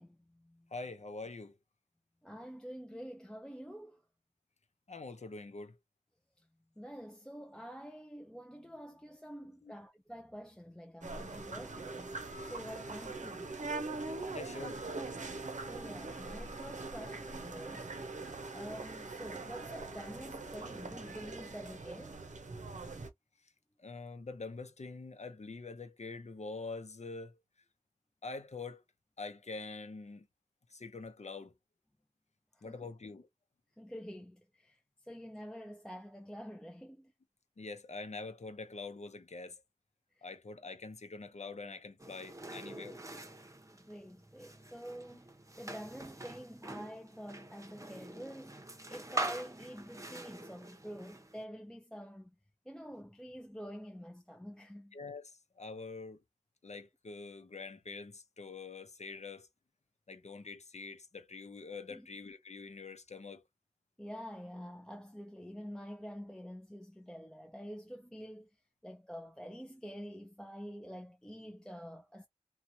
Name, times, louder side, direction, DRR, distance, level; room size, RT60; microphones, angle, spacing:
voice 1, 0.0-0.7 2.2-4.0 6.8-12.1 12.5-13.5 15.7-17.9 18.5-22.2 32.6-32.9 33.8-34.8 35.1-37.1 40.2-40.3 43.7-45.3 45.6-48.6 48.9-52.3 52.7-54.9 61.9-62.1 64.0-68.5 68.8-72.3, equal, 5° left, 0.5 m, -47 dB
voice 2, 0.7-1.6 4.9-5.8 9.6-9.7 14.3-14.8 23.8-27.4 28.2-28.8 29.2-30.3 30.7-31.5 32.6-33.3 37.6-39.6 40.2-43.0 54.9-56.2 56.6-59.5 60.1-63.4, left 3 dB, 65° left, 0.7 m, -45 dB
sound 1, 11.0-23.1, right 3 dB, 80° right, 0.7 m, -42 dB
sound 2, 42.0-51.4, right 2 dB, 25° right, 0.7 m, -44 dB
2.9 x 2.3 x 2.6 m
wide cardioid pair, 40°, 12 cm